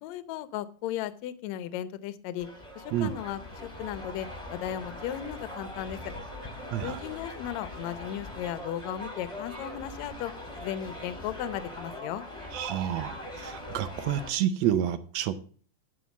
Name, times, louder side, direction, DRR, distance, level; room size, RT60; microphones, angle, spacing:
voice 1, 0.0-2.5 2.8-6.0 6.8-10.3 10.6-12.3, left 11 dB, 70° left, 1.9 m, -36 dB
sound 1, 2.4-14.3, left 1 dB, 10° left, 2.0 m, -41 dB
voice 2, 6.7-7.0 12.5-15.4, right 10 dB, 75° right, 1.7 m, -29 dB
12.5 x 5.6 x 7.1 m
omnidirectional pair, 3.6 m